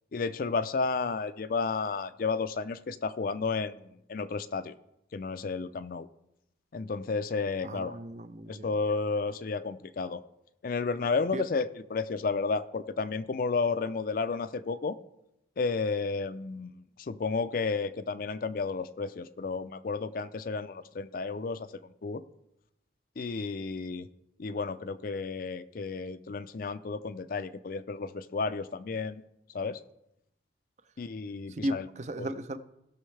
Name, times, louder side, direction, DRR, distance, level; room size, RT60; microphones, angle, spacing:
voice 1, 0.1-4.7 5.1-6.1 6.7-8.0 8.5-10.2 10.6-15.0 15.6-21.7 22.0-22.2 23.2-24.1 24.4-29.2 29.5-29.8 31.0-31.9 32.2-32.3, left 4 dB, 50° left, 12 dB, 0.4 m, -32 dB
voice 2, 7.6-8.7 11.3-11.4 31.6-32.6, equal, 40° right, 12 dB, 0.5 m, -35 dB
18.0 x 6.3 x 3.3 m, 0.83 s
head